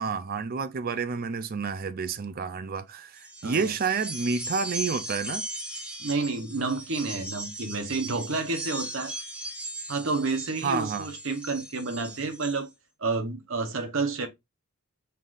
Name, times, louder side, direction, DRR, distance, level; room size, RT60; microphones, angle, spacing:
voice 1, 0.0-5.5 10.6-11.1, right 5 dB, 40° right, 0.4 m, -29 dB
sound 1, 3.2-12.6, right 1 dB, 5° right, 1.3 m, -38 dB
voice 2, 6.0-9.1 9.9-12.7 13.0-14.3, right 3 dB, 60° right, 1.0 m, -30 dB
5.4 x 3.9 x 2.5 m
head